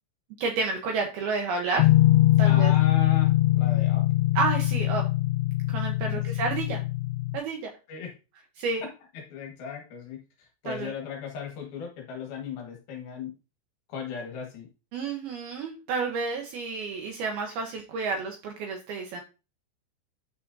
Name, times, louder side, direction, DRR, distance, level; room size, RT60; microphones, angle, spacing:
voice 1, 0.4-1.9 2.4-2.7 4.4-5.0 5.7-6.8 7.3-7.7 8.6-8.8 10.7-10.9 14.9-19.2, right 4 dB, 80° right, 2 dB, 2.2 m, -30 dB
sound 1, 1.8-7.4, left 16 dB, 80° left, 2.8 m, -22 dB
voice 2, 2.4-4.0 6.0-6.2 7.9-8.1 8.8-8.9 9.1-13.3 13.9-14.7, left 6 dB, 60° left, 1 dB, 2.9 m, -37 dB
9.9 x 6.0 x 2.7 m, 0.31 s
omnidirectional pair, 5.9 m